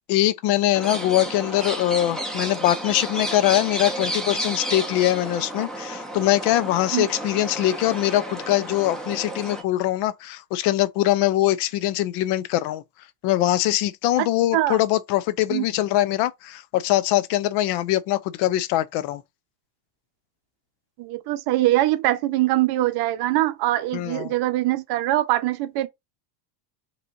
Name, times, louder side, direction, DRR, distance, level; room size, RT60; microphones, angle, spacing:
voice 1, 0.1-12.8 13.2-19.2 23.9-24.3, left 14 dB, 55° left, 0.7 m, -22 dB
sound 1, 0.7-9.6, right 1 dB, ahead, 1.1 m, -32 dB
voice 2, 21.0-25.9, right 15 dB, 50° right, 0.8 m, -22 dB
5.1 x 3.1 x 2.6 m
supercardioid pair, 115°, 49 cm